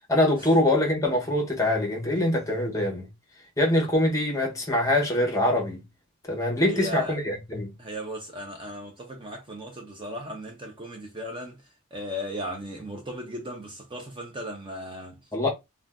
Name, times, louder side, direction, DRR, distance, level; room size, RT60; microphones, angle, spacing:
voice 1, 0.1-3.1 3.6-5.8 6.3-7.7 15.3-15.5, left 1 dB, 15° left, 0.8 m, -24 dB
voice 2, 6.6-7.2 7.8-11.6 11.9-15.3, equal, 20° right, 0.5 m, -36 dB
2.5 x 2.2 x 3.4 m
head